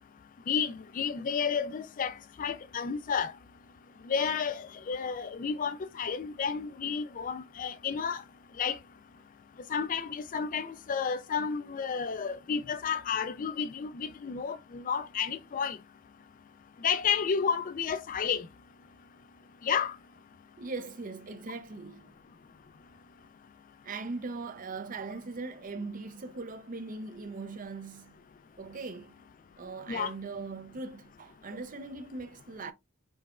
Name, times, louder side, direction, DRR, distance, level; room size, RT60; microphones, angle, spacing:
voice 1, 0.5-3.3 4.0-8.2 8.6-8.8 9.7-15.8 16.8-18.5 19.6-20.0 29.9-30.1, left 6 dB, 40° left, 0.4 m, -31 dB
voice 2, 20.6-22.1 23.8-28.2 28.6-29.1 29.6-32.7, right 3 dB, 40° right, 0.6 m, -40 dB
5.4 x 3.3 x 2.4 m
head